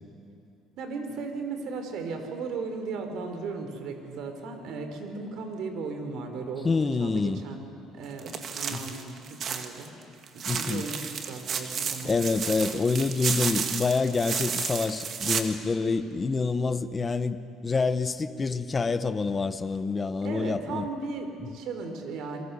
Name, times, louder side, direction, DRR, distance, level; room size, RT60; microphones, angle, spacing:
voice 1, 0.8-6.7 7.0-7.6 7.9-9.9 10.3-12.3 20.2-22.4, right 4 dB, 65° right, 6 dB, 3.9 m, -36 dB
voice 2, 6.6-7.4 8.7-8.8 10.5-10.9 12.0-20.9, left 4 dB, 25° left, 11 dB, 1.0 m, -27 dB
sound 1, 8.2-9.9 10.2-15.4, right 6 dB, 45° right, 1.9 m, -32 dB
28.5 x 23.0 x 7.0 m, 2.6 s
cardioid pair, 130°, 0 cm